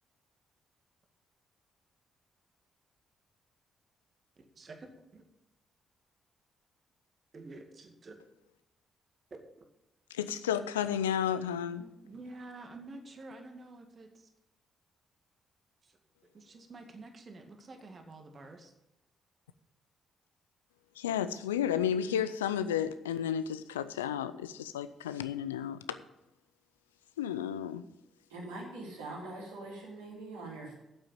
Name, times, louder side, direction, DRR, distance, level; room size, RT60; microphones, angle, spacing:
voice 1, 4.6-5.2 7.3-8.1 9.3-9.4 11.8-14.3 15.8-16.0 16.3-18.7, right 2 dB, 45° right, 4 dB, 2.0 m, -49 dB
voice 2, 10.1-11.8 21.0-26.0 27.2-27.8, left 9 dB, 85° left, 13 dB, 0.5 m, -32 dB
voice 3, 28.3-30.7, right 2 dB, 85° right, -5 dB, 3.9 m, -43 dB
8.8 x 7.8 x 8.6 m, 0.93 s
hypercardioid pair, 40°, 0 cm